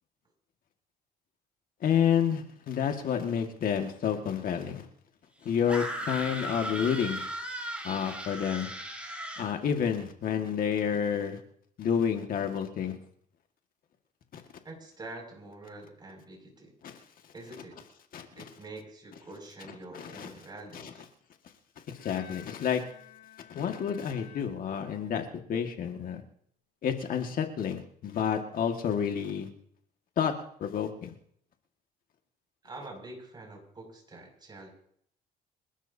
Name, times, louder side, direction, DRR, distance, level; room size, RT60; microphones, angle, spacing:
voice 1, 1.8-4.9 5.4-7.3 7.8-8.7 9.4-11.4 11.8-13.0 14.3-14.4 16.8-16.9 18.1-18.3 19.9-20.3 20.7-20.9 21.9-22.8 23.5-26.2 26.8-29.5 30.2-30.3 30.6-31.1, left 8 dB, 55° left, 4 dB, 1.9 m, -29 dB
sound 1, 5.7-9.5, right 1 dB, 5° right, 4.9 m, -37 dB
voice 2, 14.6-16.7 17.3-17.8 18.4-21.1 32.6-34.7, right 2 dB, 25° right, 1 dB, 6.5 m, -46 dB
Bowed string instrument, 22.0-25.3, left 11 dB, 85° left, 7.5 m, -53 dB
29.0 x 12.5 x 2.8 m, 0.64 s
cardioid pair, 110°, 17 cm